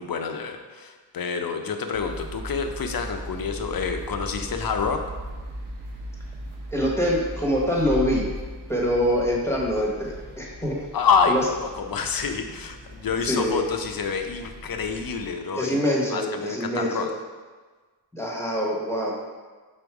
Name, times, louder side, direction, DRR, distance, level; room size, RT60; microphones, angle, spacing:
voice 1, 0.0-5.0 10.9-15.8 16.1-17.1, left 5 dB, 60° left, 5 dB, 0.6 m, -27 dB
sound 1, 1.9-15.3, equal, 70° right, 1.0 m, -38 dB
voice 2, 6.7-8.2 8.7-10.8 11.3-11.4 13.2-13.6 15.5-17.1 18.1-19.1, equal, 5° left, -4 dB, 1.1 m, -24 dB
5.3 x 4.0 x 4.7 m, 1.4 s
wide cardioid pair, 130°, 41 cm